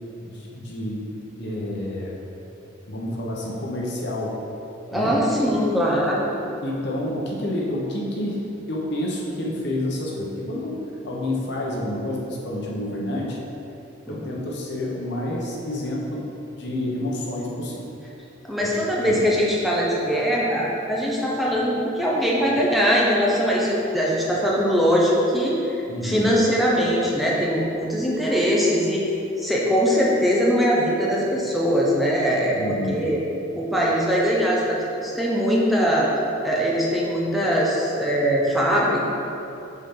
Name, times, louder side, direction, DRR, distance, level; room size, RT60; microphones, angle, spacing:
voice 1, 0.2-2.2 2.9-4.4 4.9-5.2 6.6-8.4 8.7-10.8 11.0-13.4 14.1-17.9 18.6-18.7 19.0-19.2 25.9-26.4 32.5-33.1, left 1 dB, 60° left, -3 dB, 1.0 m, -29 dB
voice 2, 4.9-6.3 14.1-14.3 18.4-25.8 26.0-29.0 29.4-33.2 33.5-36.1 36.4-39.0, equal, ahead, -5 dB, 0.7 m, -21 dB
7.1 x 4.3 x 3.8 m, 2.9 s
head